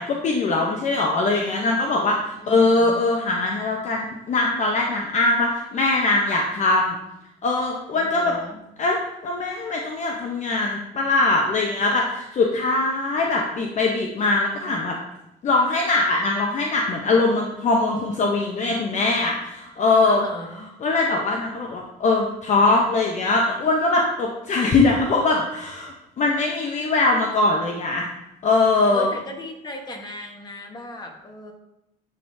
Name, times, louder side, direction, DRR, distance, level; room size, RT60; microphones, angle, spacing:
voice 1, 0.0-7.0 7.4-8.3 8.8-14.9 15.4-20.2 20.8-28.1 28.4-29.1, left 3 dB, 45° left, 0 dB, 0.7 m, -21 dB
voice 2, 2.4-3.0 7.9-8.6 20.0-20.7 28.9-31.5, left 1 dB, 25° left, 2 dB, 1.2 m, -37 dB
9.9 x 3.6 x 2.7 m, 0.86 s
cardioid pair, 110°, 17 cm